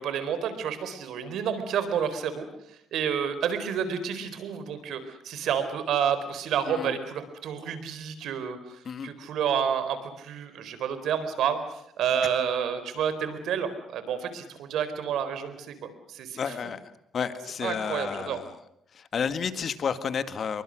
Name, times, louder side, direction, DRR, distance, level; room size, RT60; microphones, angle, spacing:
voice 1, 0.0-2.5 2.9-11.6 12.0-16.4 17.6-18.4, right 8 dB, 80° right, 11 dB, 4.1 m, -29 dB
voice 2, 16.4-16.8 17.1-18.5 18.9-20.6, left 6 dB, 50° left, 11 dB, 2.1 m, -31 dB
28.0 x 23.0 x 6.5 m, 0.75 s
cardioid pair, 90°, 0 cm